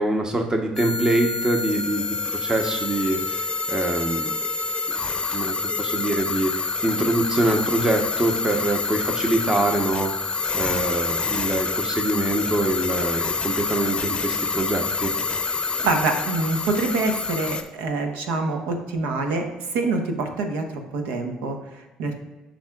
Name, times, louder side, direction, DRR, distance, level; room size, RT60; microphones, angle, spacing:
voice 1, 0.0-4.3 5.3-10.3 10.5-15.1, right 2 dB, 25° right, 3 dB, 0.9 m, -24 dB
sound 1, 0.8-17.6, left 4 dB, 30° left, 0.6 m, -27 dB
voice 2, 15.8-19.5 19.7-22.1, right 3 dB, 75° right, 4 dB, 0.9 m, -26 dB
11.5 x 3.8 x 2.3 m, 1.1 s
hypercardioid pair, 60°, 3 cm